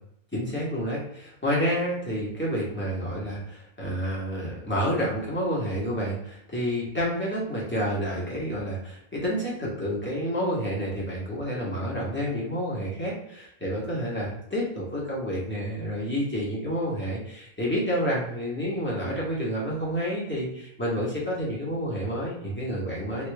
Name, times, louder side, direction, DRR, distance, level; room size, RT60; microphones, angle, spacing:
voice 1, 0.3-23.3, equal, 10° left, -6 dB, 1.2 m, -29 dB
3.2 x 2.9 x 3.3 m, 0.76 s
omnidirectional pair, 1.5 m